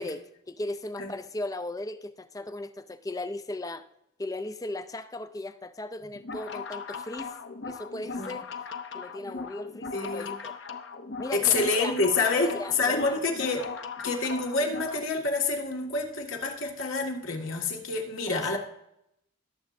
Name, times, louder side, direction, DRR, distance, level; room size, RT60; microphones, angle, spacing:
voice 1, 0.0-3.9 4.2-7.4 7.6-8.5 8.9-10.5 11.2-12.0 12.3-13.2 18.3-18.6, left 2 dB, 15° left, 0.4 m, -37 dB
sound 1, 6.2-15.0, left 5 dB, 55° left, 0.7 m, -39 dB
voice 2, 9.9-10.3 11.3-13.6 14.0-18.6, left 3 dB, 75° left, 1.9 m, -27 dB
18.5 x 7.3 x 2.6 m
head